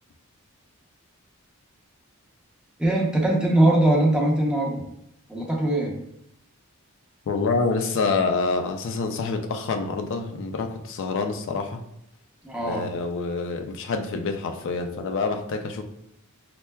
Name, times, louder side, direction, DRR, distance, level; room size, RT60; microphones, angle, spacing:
voice 1, 2.8-4.8 5.3-5.9 12.4-12.8, right 1 dB, 5° right, -3 dB, 0.7 m, -21 dB
voice 2, 7.3-11.8 12.6-15.8, left 4 dB, 60° left, 5 dB, 0.4 m, -27 dB
5.4 x 2.2 x 2.2 m, 0.78 s
head